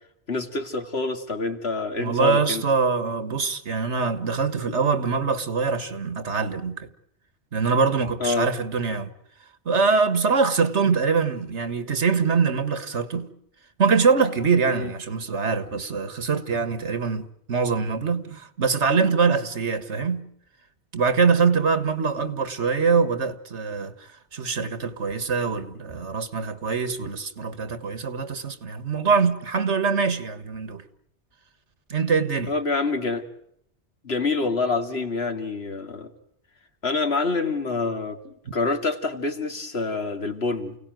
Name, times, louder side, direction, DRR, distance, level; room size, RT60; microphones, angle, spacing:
voice 1, 0.3-2.6 8.2-8.5 14.7-14.9 32.5-33.3 34.0-36.1 36.8-40.8, left 3 dB, 65° left, 2.6 m, -27 dB
voice 2, 2.0-6.9 7.5-9.1 9.7-13.3 13.8-20.3 20.9-30.8 31.9-32.5, right 5 dB, 85° right, 2.0 m, -23 dB
29.5 x 18.0 x 9.2 m
omnidirectional pair, 1.1 m